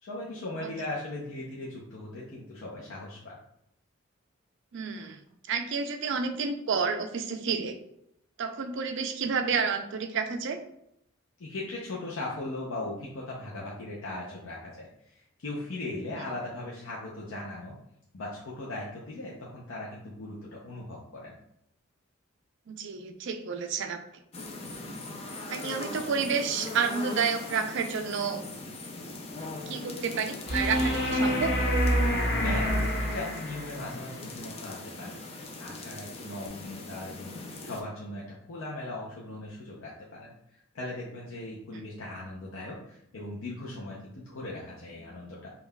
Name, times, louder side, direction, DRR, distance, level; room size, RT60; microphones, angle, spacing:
voice 1, 0.0-3.4 11.4-17.7 18.1-21.4 32.4-35.2 35.6-40.4 40.7-45.5, left 2 dB, 80° left, -4 dB, 0.6 m, -38 dB
voice 2, 4.7-5.2 5.5-7.8 8.4-10.6 22.7-24.0 25.5-28.4 29.7-31.5, right 5 dB, 60° right, 6 dB, 0.4 m, -30 dB
sound 1, 24.3-37.8, left 2 dB, 30° left, 0.4 m, -41 dB
sound 2, 30.5-33.8 36.5-36.6, equal, 45° left, 1.1 m, -26 dB
5.3 x 2.3 x 2.2 m, 0.77 s
head